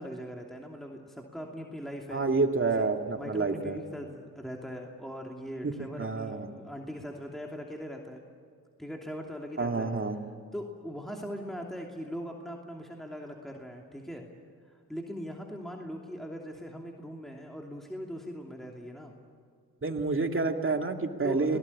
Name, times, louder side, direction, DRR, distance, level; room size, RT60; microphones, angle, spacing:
voice 1, 0.0-2.2 3.2-8.2 8.8-9.9 10.5-14.3 14.6-19.2 21.2-21.6, equal, ahead, 0 dB, 2.8 m, -40 dB
voice 2, 2.1-3.8 5.6-6.5 9.6-10.2 19.8-21.6, right 3 dB, 35° right, 5 dB, 2.3 m, -29 dB
26.5 x 18.0 x 8.6 m, 2.1 s
cardioid pair, 50°, 35 cm